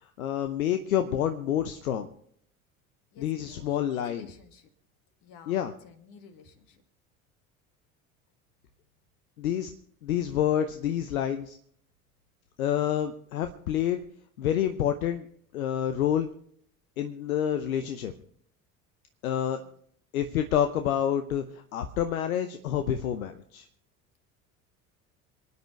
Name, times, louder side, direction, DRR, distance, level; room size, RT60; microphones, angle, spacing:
voice 1, 0.2-2.1 3.2-4.3 5.5-5.7 9.4-9.7 10.0-11.6 12.6-14.0 14.4-15.3 15.5-16.3 17.0-18.1 19.2-19.6 20.1-23.7, left 10 dB, 75° left, 9 dB, 0.8 m, -28 dB
voice 2, 3.1-4.7 5.2-6.8 19.6-19.7, left 6 dB, 50° left, 7 dB, 2.1 m, -51 dB
27.5 x 9.6 x 3.3 m, 0.65 s
figure-of-eight pair, 65°, 42 cm